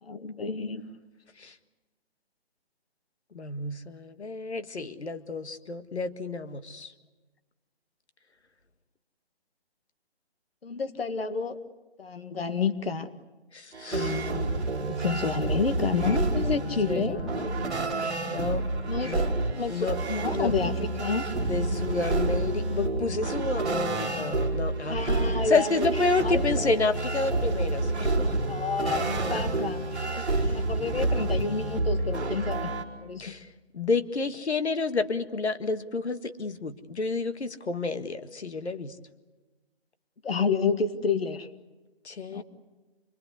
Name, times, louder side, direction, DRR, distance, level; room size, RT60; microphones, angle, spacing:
voice 1, 0.0-0.9 10.6-11.6 12.0-13.1 13.9-14.6 14.9-17.2 18.9-19.1 19.6-21.3 24.9-25.9 26.2-26.4 28.5-29.9 30.5-32.7 33.0-33.2 40.2-41.5 42.3-42.4, left 5 dB, 65° left, 9 dB, 1.8 m, -29 dB
voice 2, 3.3-6.9 13.5-14.2 16.9-17.5 18.3-18.6 19.0-19.2 19.7-20.0 20.2-20.5 21.5-28.3 29.3-29.4 30.1-30.6 33.2-33.5 33.7-39.0 42.0-42.4, left 3 dB, 80° left, 9 dB, 1.8 m, -30 dB
sound 1, 13.7-32.8, right 2 dB, ahead, 1.6 m, -29 dB
27.5 x 22.0 x 8.2 m, 1.2 s
hypercardioid pair, 175°, 33 cm